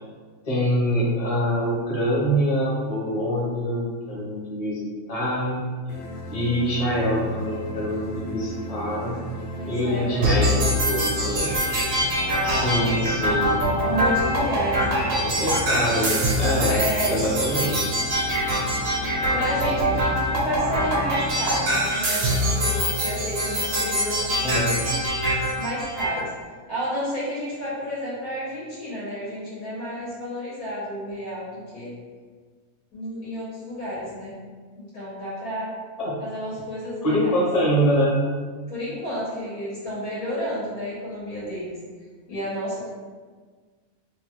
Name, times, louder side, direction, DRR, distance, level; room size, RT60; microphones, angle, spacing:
voice 1, 0.4-5.7 6.3-9.2 9.6-11.6 12.4-13.6 15.1-17.9 24.4-24.8 36.0-36.2 37.0-38.2, equal, 35° left, -6 dB, 0.7 m, -25 dB
sound 1, 5.9-21.9, right 1 dB, 70° left, 1.0 m, -36 dB
voice 2, 9.5-11.0 12.2-12.9 13.9-15.1 16.7-17.2 18.2-18.3 19.3-25.1 25.6-26.3 26.7-31.9 32.9-34.3 34.8-35.7 36.2-37.4 38.7-41.7 42.3-42.9, equal, 90° left, -9 dB, 1.4 m, -31 dB
sound 2, 10.2-26.2, equal, 70° right, 1.0 m, -24 dB
3.0 x 2.2 x 3.0 m, 1.5 s
omnidirectional pair, 1.5 m